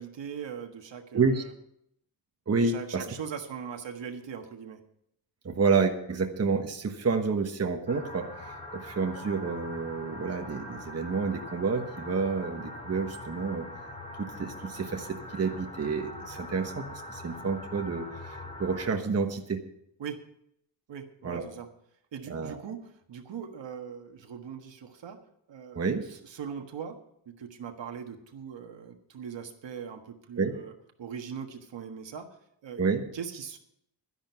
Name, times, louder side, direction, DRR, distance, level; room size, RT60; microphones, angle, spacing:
voice 1, 0.0-1.5 2.6-4.8 20.0-20.2 20.9-21.7 22.1-25.2 25.5-25.8 26.1-27.0 27.2-30.7 31.0-32.3 32.6-32.8 33.1-33.6, right 7 dB, 75° right, 5 dB, 1.6 m, -40 dB
voice 2, 1.1-1.4 2.5-3.1 5.4-13.7 14.2-19.6 21.2-21.4 22.3-22.6 25.7-26.0 30.4-30.5 32.8-33.1, right 4 dB, 35° right, 4 dB, 1.2 m, -29 dB
sound 1, 7.9-18.9, left 1 dB, 15° left, 2.5 m, -42 dB
11.5 x 10.5 x 5.7 m, 0.73 s
wide cardioid pair, 140°, 44 cm